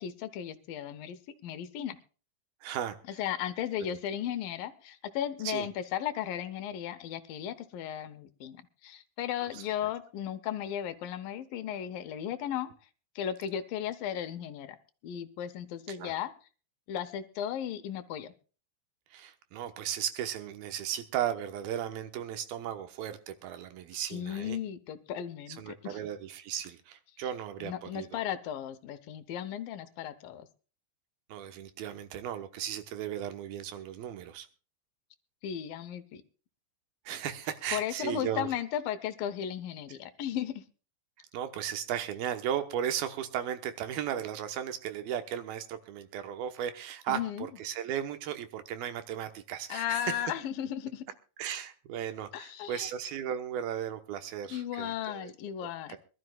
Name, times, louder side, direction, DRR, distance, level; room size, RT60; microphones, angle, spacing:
voice 1, 0.0-2.0 3.2-12.7 13.2-14.8 15.0-16.3 16.9-18.3 24.1-26.0 27.6-30.5 35.4-36.2 37.7-40.6 47.1-47.5 49.7-51.0 52.3-52.9 54.5-56.0, left 10 dB, 75° left, 11 dB, 2.5 m, -35 dB
voice 2, 2.6-3.2 3.8-4.0 5.4-5.7 9.5-9.6 15.9-16.1 19.1-24.6 25.5-28.2 31.3-34.5 37.1-38.5 41.2-50.1 51.4-55.3 55.9-56.0, right 10 dB, 80° right, 8 dB, 2.9 m, -36 dB
24.5 x 12.5 x 2.3 m, 0.36 s
omnidirectional pair, 4.3 m